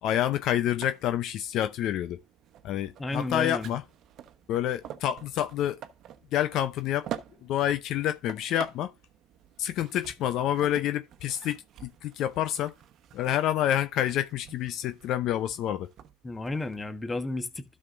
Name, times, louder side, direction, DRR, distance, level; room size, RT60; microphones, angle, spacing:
voice 1, 0.0-2.2 2.6-3.8 4.5-5.8 6.3-7.1 7.4-8.9 9.6-12.7 13.1-15.9, left 11 dB, 55° left, 0.6 m, -28 dB
sound 1, 0.8-16.8, right 10 dB, 50° right, 1.0 m, -47 dB
voice 2, 3.0-3.7 16.2-17.6, left 2 dB, 15° left, 1.4 m, -32 dB
12.5 x 6.4 x 2.6 m
supercardioid pair, 95°, 0 cm